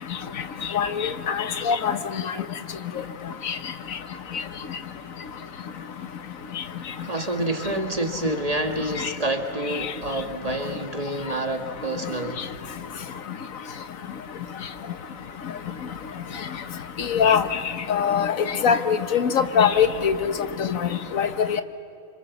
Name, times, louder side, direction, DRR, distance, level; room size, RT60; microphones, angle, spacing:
voice 1, 1.3-1.9 17.1-17.4 17.9-18.3 18.6-20.3 21.1-21.3, left 7 dB, 85° left, 10 dB, 1.5 m, -21 dB
voice 2, 7.0-12.4, right 2 dB, 30° right, 4 dB, 1.7 m, -28 dB
27.0 x 25.5 x 7.1 m, 2.5 s
omnidirectional pair, 1.4 m